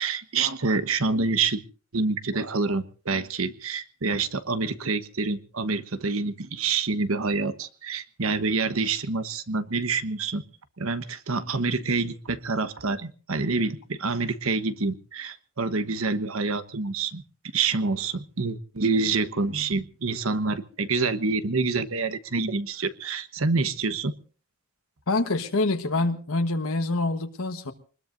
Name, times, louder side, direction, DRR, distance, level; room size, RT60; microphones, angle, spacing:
voice 1, 0.0-1.6 1.9-10.4 10.8-17.2 17.5-24.1, right 4 dB, 75° right, 12 dB, 1.1 m, -27 dB
voice 2, 25.1-27.7, left 2 dB, 75° left, 6 dB, 1.3 m, -26 dB
24.5 x 20.5 x 2.6 m, 0.38 s
head